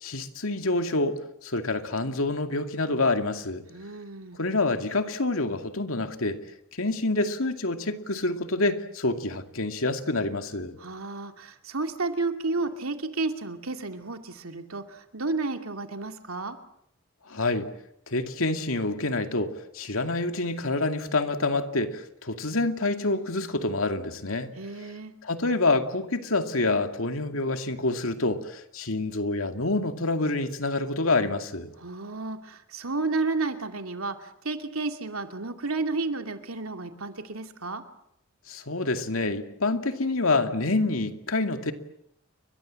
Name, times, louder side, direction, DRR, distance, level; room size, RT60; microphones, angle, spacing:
voice 1, 0.0-3.6 4.4-6.4 6.8-10.8 17.3-17.7 18.1-24.5 25.2-31.7 38.5-41.7, left 2 dB, 75° left, 6 dB, 2.4 m, -27 dB
voice 2, 3.7-4.4 10.8-16.6 24.6-25.1 31.8-37.8, right 3 dB, 85° right, 6 dB, 2.5 m, -32 dB
30.0 x 23.5 x 7.7 m, 0.77 s
head